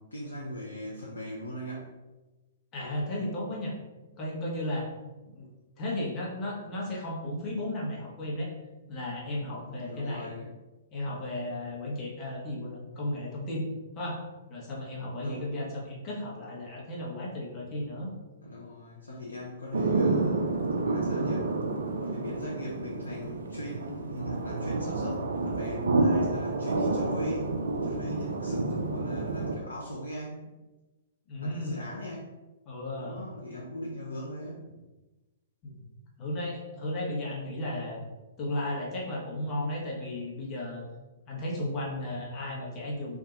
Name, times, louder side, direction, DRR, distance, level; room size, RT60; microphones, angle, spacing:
voice 1, 0.0-1.9 9.7-10.5 15.2-15.5 18.4-20.6 20.8-21.5 22.0-30.5 31.4-32.3 33.0-34.7, left 1 dB, 85° left, -4 dB, 0.8 m, -40 dB
voice 2, 2.7-3.7 4.2-4.9 5.3-5.5 5.8-8.5 8.9-10.3 10.9-13.6 13.9-14.2 14.5-18.1 31.3-31.9 32.7-33.2 35.6-35.8 36.2-38.0 38.4-40.8 41.3-43.2, left 1 dB, 30° left, -3 dB, 1.3 m, -34 dB
sound 1, 19.7-29.6, right 3 dB, 75° right, 0.5 m, -29 dB
3.7 x 2.7 x 3.8 m, 1.1 s
hypercardioid pair, 120°, 0 cm